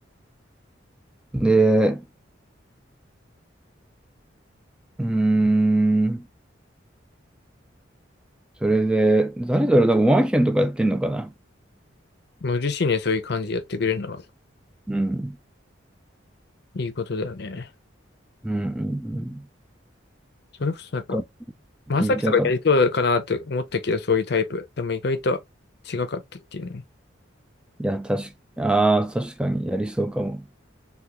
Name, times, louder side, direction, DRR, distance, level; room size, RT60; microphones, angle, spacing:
voice 1, 1.3-2.0 5.0-6.2 8.6-11.3 14.9-15.4 18.4-19.4 21.1-21.2 22.0-22.5 27.8-28.3 28.6-30.4, right 2 dB, 5° right, 0.3 m, -21 dB
voice 2, 12.4-14.2 16.7-17.7 20.6-21.2 21.9-25.4 25.9-26.8, left 4 dB, 55° left, 0.6 m, -24 dB
3.5 x 2.3 x 2.8 m
head